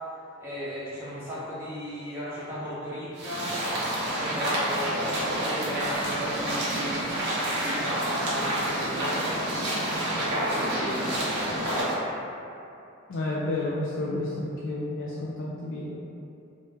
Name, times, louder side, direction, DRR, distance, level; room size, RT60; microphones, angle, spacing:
voice 1, 0.4-3.6 4.0-7.0 7.3-9.5 9.9-12.0, equal, 10° right, -12 dB, 0.6 m, -36 dB
sound 1, 3.2-12.0, right 1 dB, 55° right, 0.7 m, -28 dB
voice 2, 13.1-16.0, left 2 dB, 65° left, -5 dB, 0.3 m, -31 dB
2.1 x 2.1 x 3.2 m, 2.7 s
head